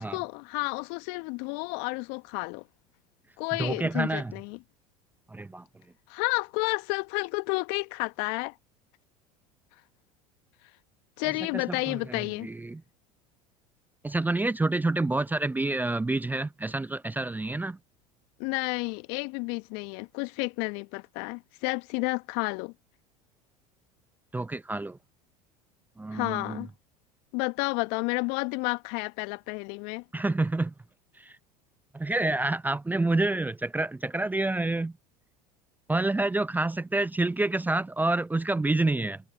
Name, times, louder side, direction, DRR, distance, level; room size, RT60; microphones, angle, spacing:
voice 1, 0.0-2.6 3.4-4.6 6.1-8.5 11.2-12.5 18.4-22.7 26.1-26.7 27.3-30.0, left 31 dB, 60° left, 1.3 m, -31 dB
voice 2, 3.6-4.3 5.3-5.6 11.7-12.8 14.0-17.8 24.3-25.0 26.0-26.7 30.1-30.7 31.2-31.3 31.9-34.9 35.9-39.2, right 2 dB, 10° right, 0.7 m, -28 dB
figure-of-eight pair, 75°, 20 cm